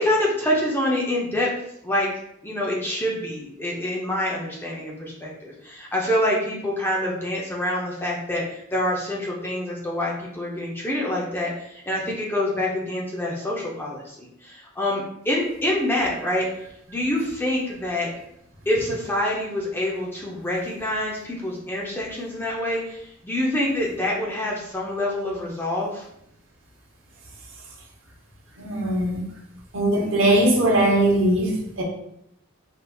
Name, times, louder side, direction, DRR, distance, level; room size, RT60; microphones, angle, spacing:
voice 1, 0.0-1.5 1.8-2.1 2.4-16.5 16.9-18.1 18.7-26.1, left 1 dB, 10° left, -4 dB, 0.5 m, -26 dB
voice 2, 28.6-29.2 29.7-31.8, right 1 dB, 70° right, -2 dB, 0.9 m, -20 dB
3.4 x 2.7 x 2.3 m, 0.76 s
head